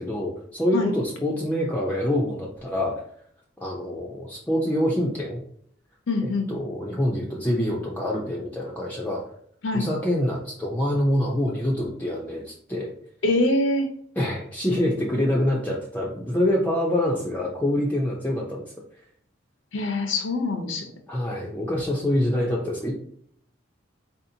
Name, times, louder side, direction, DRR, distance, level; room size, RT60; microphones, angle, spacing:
voice 1, 0.0-3.0 3.6-5.4 6.2-9.2 9.7-12.9 14.2-18.7 21.1-22.9, left 1 dB, 10° left, -3 dB, 0.5 m, -25 dB
voice 2, 6.1-6.5 9.6-9.9 13.2-13.9 19.7-20.9, left 2 dB, 85° left, 5 dB, 0.7 m, -24 dB
4.2 x 2.7 x 2.7 m, 0.63 s
head